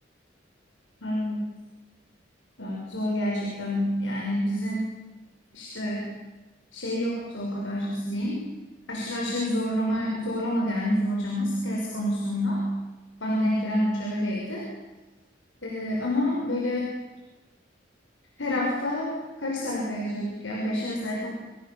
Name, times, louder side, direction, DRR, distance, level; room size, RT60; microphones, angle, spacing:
voice 1, 1.0-1.4 2.6-4.8 5.5-6.1 6.7-8.4 8.9-12.6 13.2-14.6 15.6-16.9 18.4-19.1 19.4-21.3, left 1 dB, 90° left, -2 dB, 6.4 m, -28 dB
28.0 x 26.5 x 7.4 m, 1.2 s
head